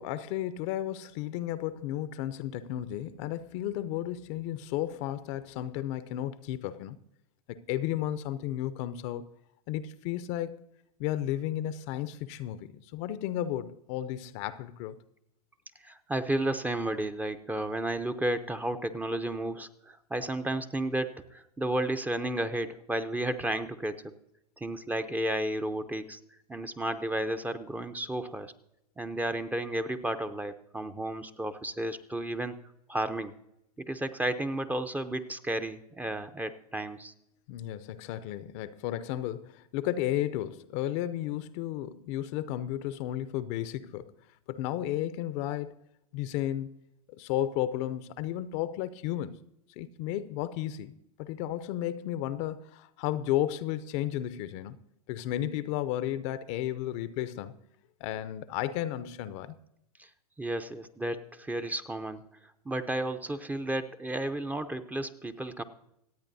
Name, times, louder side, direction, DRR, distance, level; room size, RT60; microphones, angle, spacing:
voice 1, 0.0-7.0 7.5-9.3 9.7-10.6 11.0-15.0 37.5-44.1 44.5-45.8 46.1-46.7 47.1-49.4 49.8-54.8 55.1-57.6 58.0-59.5, left 12 dB, 45° left, 0.7 m, -33 dB
voice 2, 15.8-24.1 24.6-26.2 26.5-28.5 29.0-32.5 32.9-33.3 33.8-37.1 60.0-60.1 60.4-62.2 62.6-65.6, right 1 dB, 10° right, 0.7 m, -32 dB
26.0 x 8.7 x 2.7 m
hypercardioid pair, 105°, 20 cm